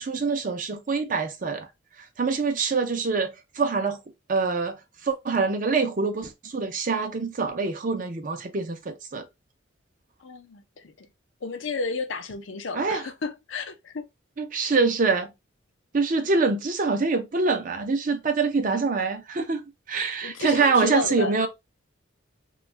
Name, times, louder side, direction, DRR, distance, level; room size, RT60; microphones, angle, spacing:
voice 1, 0.0-1.7 2.2-4.0 4.3-9.3 12.7-13.0 14.4-15.3 15.9-19.6 19.9-21.5, right 4 dB, 40° right, 0.5 m, -25 dB
voice 2, 10.2-11.1 11.4-14.1 20.2-21.5, left 3 dB, 70° left, 0.6 m, -32 dB
2.6 x 2.3 x 3.1 m
head